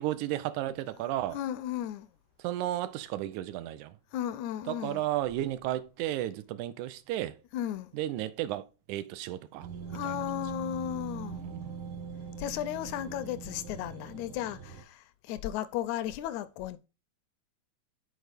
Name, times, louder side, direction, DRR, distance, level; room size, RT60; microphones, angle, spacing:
voice 1, 0.0-1.4 2.4-3.9 4.7-7.4 7.9-10.1 11.3-11.8, right 13 dB, 85° right, 2.1 m, -33 dB
voice 2, 1.3-2.1 4.1-5.0 7.5-7.9 9.8-11.4 12.4-16.8, left 11 dB, 80° left, 1.9 m, -35 dB
sound 1, 9.6-14.8, right 6 dB, 55° right, 1.5 m, -41 dB
6.4 x 4.6 x 5.1 m
omnidirectional pair, 3.4 m